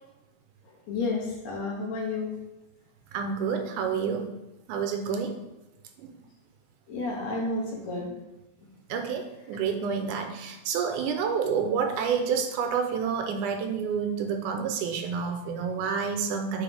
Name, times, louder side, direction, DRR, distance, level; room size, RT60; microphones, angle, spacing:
voice 1, 0.9-2.3 6.9-8.1, left 3 dB, 65° left, -2 dB, 2.4 m, -31 dB
voice 2, 3.1-4.3 4.7-5.3 6.0-6.1 8.9-16.6, right 6 dB, 85° right, 5 dB, 2.2 m, -29 dB
8.5 x 4.0 x 3.5 m, 1.0 s
omnidirectional pair, 3.6 m